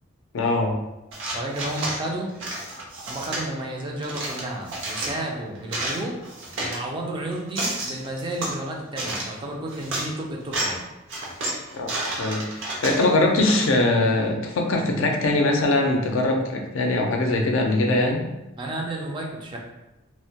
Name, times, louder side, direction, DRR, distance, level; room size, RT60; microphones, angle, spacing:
voice 1, 0.3-0.8 11.7-11.9 12.2-18.3, left 2 dB, 75° left, 2 dB, 0.4 m, -22 dB
sound 1, 1.1-2.0 2.4-3.5 4.0-5.2 5.5-6.8 7.3-8.6 8.9-9.4 9.7-10.1 10.4-10.8 11.1-13.8, right 2 dB, 70° right, 0.6 m, -30 dB
voice 2, 1.3-2.3 3.1-6.2 6.5-10.9 18.6-19.6, right 1 dB, 25° right, -1 dB, 0.3 m, -32 dB
2.1 x 2.1 x 2.8 m, 0.97 s
head